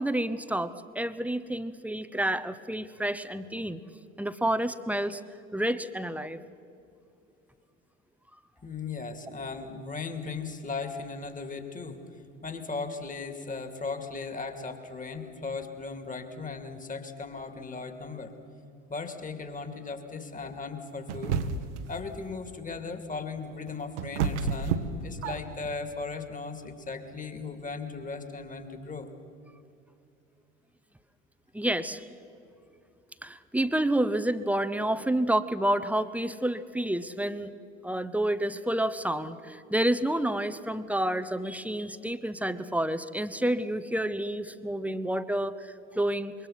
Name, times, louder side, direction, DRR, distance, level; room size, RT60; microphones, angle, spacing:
voice 1, 0.0-3.8 4.2-5.2 5.5-6.4 31.5-32.1 33.2-37.5 37.8-46.3, right 1 dB, 5° right, 11 dB, 0.8 m, -29 dB
voice 2, 8.6-12.0 12.4-18.3 18.9-21.4 21.9-29.1, left 4 dB, 20° left, 8 dB, 2.4 m, -37 dB
sound 1, 21.1-21.9 23.4-25.7, right 6 dB, 65° right, 1.3 m, -30 dB
26.0 x 23.0 x 5.8 m, 2.6 s
figure-of-eight pair, 65°, 39 cm